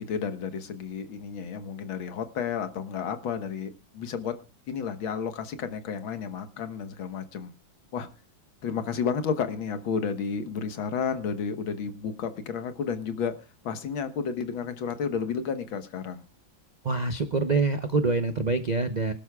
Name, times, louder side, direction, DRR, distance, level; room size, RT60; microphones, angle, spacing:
voice 1, 0.0-4.4 4.7-7.5 7.9-8.1 8.6-13.4 13.6-16.2, left 6 dB, 90° left, 9 dB, 2.1 m, -31 dB
voice 2, 16.8-19.1, right 3 dB, 60° right, 8 dB, 0.4 m, -25 dB
25.0 x 12.0 x 2.3 m, 0.29 s
omnidirectional pair, 2.1 m